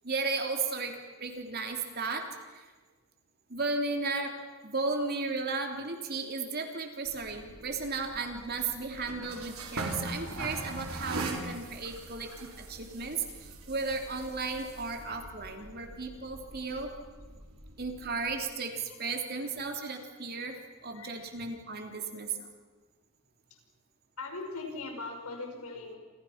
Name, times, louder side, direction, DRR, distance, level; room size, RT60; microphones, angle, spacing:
voice 1, 0.0-2.7 3.5-4.3 4.6-16.9 17.8-20.6 20.8-22.5, right 4 dB, 45° right, 4 dB, 3.2 m, -35 dB
sound 1, 7.0-18.3, right 2 dB, 75° right, 4.1 m, -42 dB
voice 2, 24.2-26.0, left 3 dB, 85° left, 3 dB, 5.7 m, -41 dB
28.0 x 28.0 x 5.9 m, 1.3 s
head